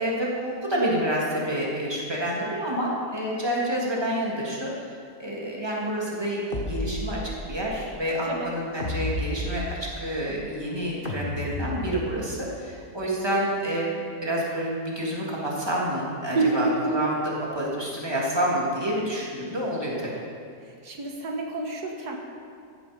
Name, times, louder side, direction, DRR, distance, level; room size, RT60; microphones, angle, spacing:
voice 1, 0.0-4.9 5.2-17.2 17.5-20.1, equal, 15° right, -4 dB, 2.9 m, -28 dB
sound 1, 6.5-7.6 8.8-10.1 11.0-12.3, left 1 dB, 35° left, 1.7 m, -32 dB
voice 2, 16.3-17.1 20.6-22.2, right 3 dB, 85° right, 1 dB, 2.0 m, -28 dB
15.0 x 12.0 x 5.3 m, 2.2 s
omnidirectional pair, 1.6 m